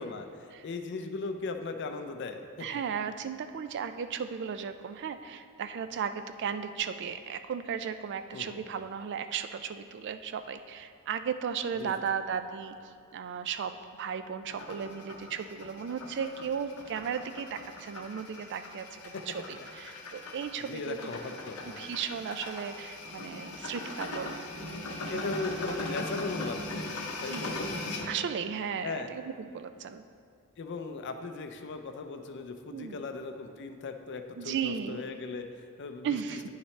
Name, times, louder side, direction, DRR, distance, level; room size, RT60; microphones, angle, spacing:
voice 1, 0.0-2.8 8.3-8.6 11.8-12.2 19.1-19.2 20.6-21.9 25.1-27.6 27.8-28.1 28.8-29.2 30.6-36.4, left 3 dB, 55° left, 7 dB, 0.5 m, -38 dB
voice 2, 2.6-12.8 13.1-21.1 21.6-25.2 25.7-25.8 27.2-27.6 28.1-30.0 32.7-33.0 34.4-35.0 36.0-36.4, right 7 dB, 55° right, 10 dB, 0.3 m, -36 dB
sound 1, 14.5-28.1, left 2 dB, 80° left, 0.8 m, -40 dB
9.2 x 5.7 x 3.2 m, 2.3 s
head